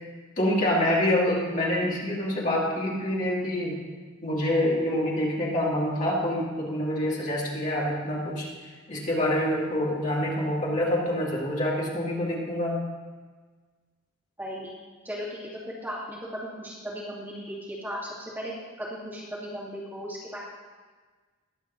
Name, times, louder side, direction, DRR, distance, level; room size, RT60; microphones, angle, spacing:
voice 1, 0.4-3.8 4.2-12.8, left 1 dB, 40° left, -5 dB, 2.3 m, -26 dB
voice 2, 14.4-14.7 15.0-15.4 15.7-18.5 18.8-20.4, equal, 10° right, -7 dB, 2.3 m, -36 dB
21.0 x 8.2 x 2.7 m, 1.4 s
head